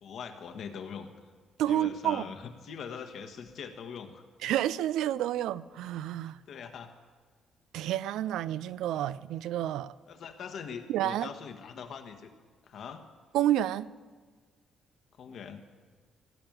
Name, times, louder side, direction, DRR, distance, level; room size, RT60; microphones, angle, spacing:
voice 1, 0.0-1.1 1.7-4.2 6.5-6.9 10.1-12.3 12.6-13.0 15.2-15.6, left 6 dB, 70° left, 1.5 m, -42 dB
voice 2, 1.6-2.2 4.4-6.4 7.7-9.9 10.9-11.3 13.3-13.9, right 12 dB, 90° right, 0.4 m, -29 dB
17.0 x 7.0 x 9.2 m
cardioid pair, 90°, 0 cm